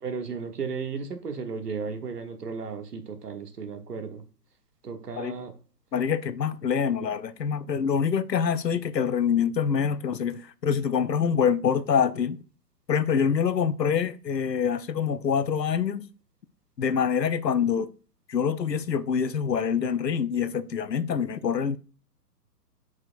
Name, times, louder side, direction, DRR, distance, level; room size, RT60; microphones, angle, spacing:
voice 1, 0.0-4.2 4.8-5.5, right 5 dB, 70° right, 1.3 m, -34 dB
voice 2, 5.9-12.4 12.9-16.0 16.8-17.9 18.3-21.8, left 7 dB, 85° left, 0.6 m, -25 dB
8.3 x 4.9 x 2.5 m
figure-of-eight pair, 120°, 48 cm